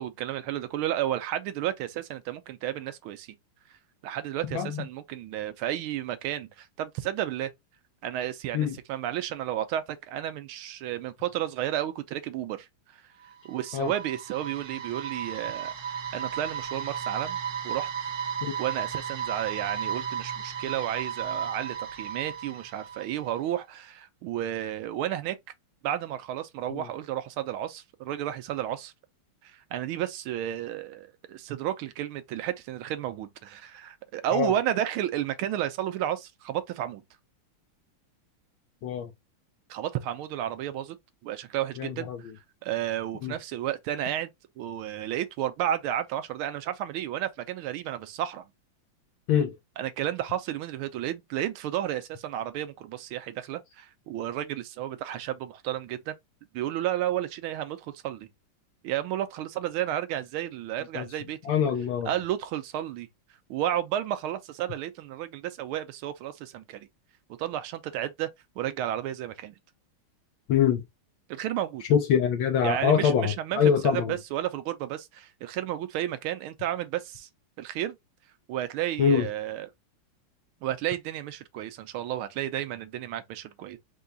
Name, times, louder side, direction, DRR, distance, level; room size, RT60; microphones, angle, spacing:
voice 1, 0.0-3.4 4.0-7.5 8.0-12.7 13.4-17.9 18.6-25.4 25.8-28.9 29.4-37.0 39.7-41.0 41.2-42.3 42.6-44.3 44.6-48.4 49.8-56.2 56.5-58.3 58.8-61.4 62.1-63.1 63.5-66.9 67.4-68.3 68.6-69.6 71.3-71.8 72.6-77.3 77.6-77.9 78.5-79.7 80.6-83.8, right 12 dB, 80° right, 1.5 m, -32 dB
voice 2, 4.5-4.8 8.5-8.8 13.7-13.9 18.4-18.6 26.7-26.9 34.3-34.5 38.8-39.1 41.8-42.3 43.2-43.4 49.3-49.6 60.9-61.1 61.4-62.1 70.5-70.8 71.9-74.2 79.0-79.3, left 7 dB, 75° left, 1.3 m, -24 dB
sound 1, 13.2-23.3, right 8 dB, 60° right, 1.0 m, -34 dB
4.7 x 2.3 x 3.8 m
omnidirectional pair, 2.4 m